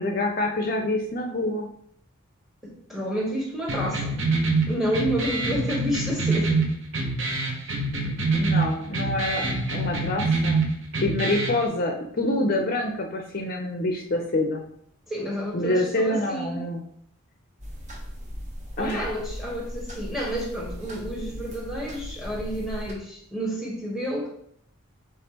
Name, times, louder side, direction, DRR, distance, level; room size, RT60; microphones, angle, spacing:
voice 1, 0.0-1.7 7.9-8.0 8.3-10.6 11.0-14.6 15.5-16.8 18.8-19.1, left 2 dB, 40° left, 3 dB, 0.4 m, -26 dB
voice 2, 2.6-4.2 4.7-6.6 15.1-16.6 18.8-24.3, equal, ahead, -1 dB, 0.9 m, -30 dB
sound 1, 3.7-11.7, right 3 dB, 60° right, 0.7 m, -26 dB
sound 2, 17.6-22.9, equal, 35° right, 0.8 m, -37 dB
5.2 x 3.4 x 2.9 m, 0.68 s
head